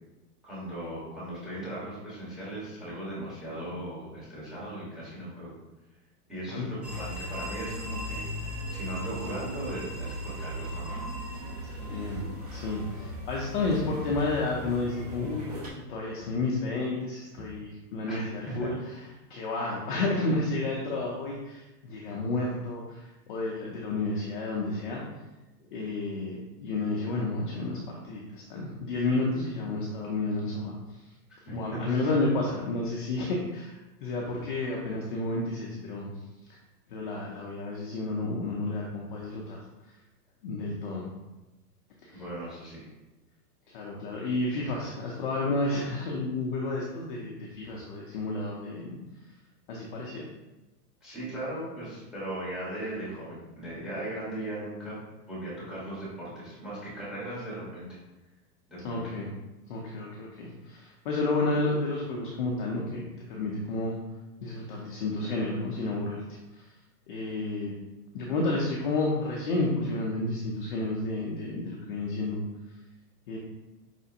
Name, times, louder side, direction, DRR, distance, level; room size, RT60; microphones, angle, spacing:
voice 1, 0.4-5.5 6.3-11.0 18.1-18.7 31.3-31.4 31.7-32.0 42.1-42.9 51.0-54.9 55.3-57.9 58.7-59.1, right 1 dB, ahead, -7 dB, 1.4 m, -38 dB
sound 1, 6.8-15.7, equal, 30° right, 0.3 m, -37 dB
voice 2, 11.8-15.5 15.9-18.7 19.3-25.0 25.7-27.8 28.0-30.8 31.5-36.1 36.9-39.6 40.4-41.1 42.0-42.2 43.7-49.0 49.7-50.2 58.8-59.3 59.7-63.0 63.3-64.0 64.4-66.6 67.1-67.7 68.1-72.4 73.3-73.4, left 2 dB, 35° left, -3 dB, 0.5 m, -31 dB
5.0 x 3.3 x 2.7 m, 1.1 s
supercardioid pair, 155°, 48 cm